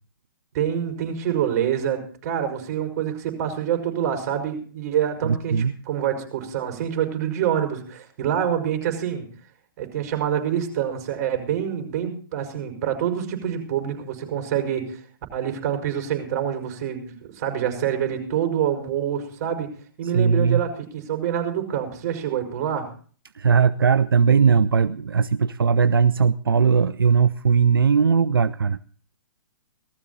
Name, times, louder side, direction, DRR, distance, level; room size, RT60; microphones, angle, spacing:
voice 1, 0.5-9.3 9.8-15.0 15.3-19.7 20.0-22.9, right 9 dB, 45° right, 6 dB, 5.8 m, -26 dB
voice 2, 5.2-5.7 20.1-20.6 23.3-28.8, right 6 dB, 85° right, 13 dB, 0.7 m, -19 dB
19.0 x 13.5 x 4.1 m, 0.43 s
hypercardioid pair, 135°, 12 cm